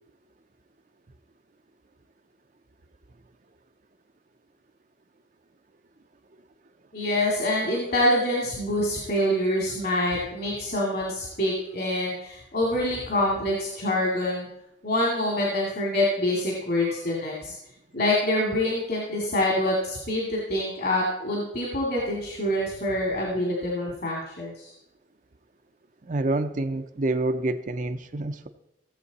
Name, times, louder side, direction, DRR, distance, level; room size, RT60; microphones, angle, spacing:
voice 1, 6.9-14.5 14.8-17.5 17.9-24.7, left 1 dB, 60° left, -2 dB, 2.4 m, -26 dB
voice 2, 26.0-28.5, right 2 dB, 45° right, 8 dB, 0.6 m, -27 dB
16.5 x 7.6 x 4.1 m, 0.83 s
head